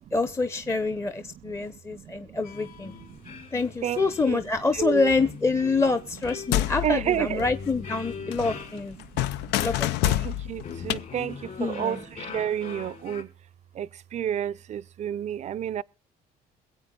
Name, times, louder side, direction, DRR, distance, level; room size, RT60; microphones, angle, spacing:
voice 1, 0.1-2.9 3.5-9.0 9.6-10.3 11.6-12.0, left 3 dB, 15° left, 0.7 m, -26 dB
voice 2, 1.4-2.4 2.9-3.4 3.8-4.4 4.7-5.1 6.8-7.5 8.2-8.6 8.9-9.5 10.0-13.3 13.7-15.8, right 10 dB, 45° right, 0.5 m, -31 dB
sound 1, 2.4-13.2, left 6 dB, 55° left, 3.9 m, -42 dB
sound 2, 6.2-8.0 8.3-11.0, left 13 dB, 85° left, 0.6 m, -28 dB
22.0 x 8.1 x 3.7 m
cardioid pair, 110°, 17 cm